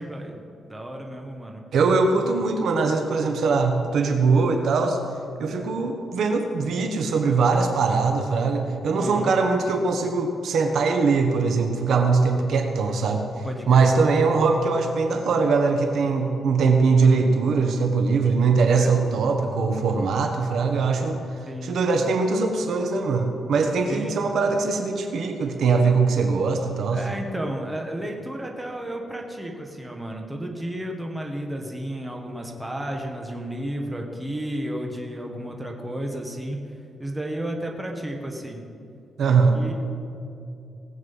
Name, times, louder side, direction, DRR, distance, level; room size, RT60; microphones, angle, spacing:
voice 1, 0.0-1.6 8.9-9.3 13.4-13.9 18.7-18.9 21.4-21.8 23.9-24.2 26.9-36.6 37.0-38.6 39.2-39.7, right 1 dB, 10° right, 1 dB, 1.5 m, -32 dB
voice 2, 1.7-5.0 5.4-13.3 13.7-21.2 21.6-27.0 39.2-39.6, right 4 dB, 70° right, 4 dB, 1.3 m, -21 dB
19.0 x 7.8 x 5.6 m, 2.5 s
cardioid pair, 125°, 0 cm